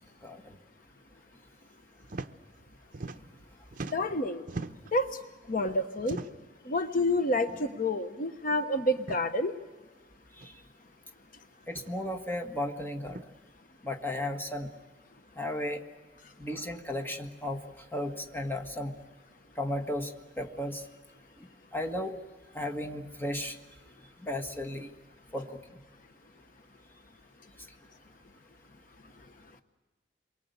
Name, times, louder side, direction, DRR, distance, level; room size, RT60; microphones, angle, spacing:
voice 1, 0.2-0.6 10.4-10.6 11.7-13.2 13.8-14.7 15.4-15.8 16.4-17.6 17.9-18.9 19.6-20.9 21.7-22.2 22.5-23.6 24.2-24.9 25.3-25.6, left 1 dB, 10° left, 3 dB, 1.7 m, -34 dB
sound 1, 2.0-2.3 2.6-3.4 3.7-5.0 6.0-6.5 7.4-7.6 7.9-8.0 8.9-9.2 10.4-10.5 11.6-11.9 13.0-13.3, right 3 dB, 50° right, 0.8 m, -41 dB
voice 2, 3.9-4.4 4.9-5.2 5.5-6.2 6.6-9.5, left 1 dB, 50° left, 8 dB, 1.1 m, -28 dB
28.5 x 23.0 x 8.2 m, 1.3 s
head